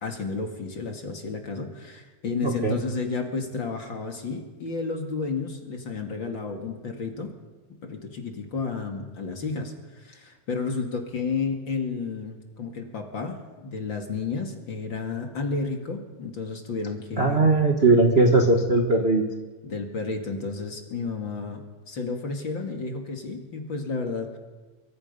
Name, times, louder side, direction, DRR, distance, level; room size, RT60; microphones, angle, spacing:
voice 1, 0.0-7.3 7.8-17.5 19.6-24.4, left 4 dB, 40° left, 3 dB, 2.5 m, -32 dB
voice 2, 2.4-2.8 17.2-19.2, right 3 dB, 30° right, 1 dB, 1.1 m, -19 dB
24.0 x 24.0 x 5.5 m, 1.3 s
omnidirectional pair, 3.4 m